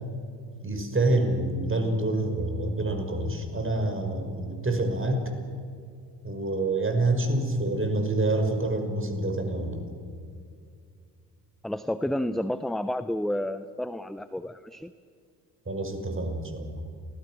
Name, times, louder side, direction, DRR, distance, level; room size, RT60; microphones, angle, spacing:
voice 1, 0.6-5.3 6.2-9.8 15.7-16.8, right 2 dB, 25° right, 5 dB, 5.6 m, -27 dB
voice 2, 11.6-14.9, left 1 dB, ahead, 13 dB, 0.8 m, -30 dB
28.5 x 20.0 x 6.3 m, 2.3 s
hypercardioid pair, 50°, 47 cm